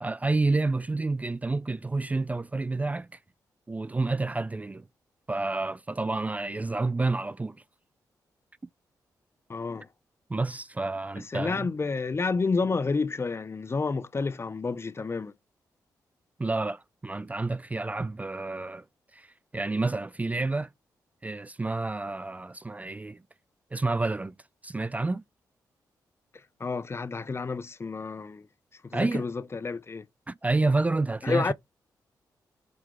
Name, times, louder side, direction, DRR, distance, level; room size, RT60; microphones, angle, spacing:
voice 1, 0.0-3.1 3.7-4.8 5.3-7.6 10.3-11.7 16.4-18.8 19.1-20.7 21.2-23.2 23.7-24.3 24.6-25.2 28.9-29.3 30.3-31.5, right 3 dB, 20° right, 0.4 m, -29 dB
voice 2, 9.5-9.9 11.3-15.3 26.6-28.5 28.8-30.0 31.2-31.5, left 4 dB, 35° left, 0.7 m, -30 dB
7.8 x 3.6 x 3.3 m
cardioid pair, 65°, 7 cm